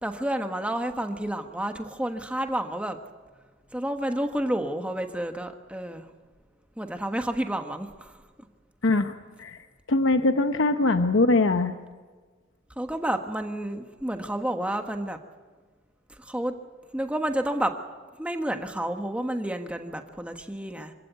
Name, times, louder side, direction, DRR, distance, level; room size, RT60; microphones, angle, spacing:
voice 1, 0.0-3.0 3.7-6.1 6.8-8.2 12.8-15.2 16.1-16.5 16.9-17.7 18.2-20.9, right 1 dB, 5° right, 5 dB, 1.3 m, -30 dB
voice 2, 8.8-9.1 9.4-11.8, left 2 dB, 75° left, 7 dB, 0.9 m, -22 dB
26.0 x 16.5 x 9.4 m, 1.4 s
head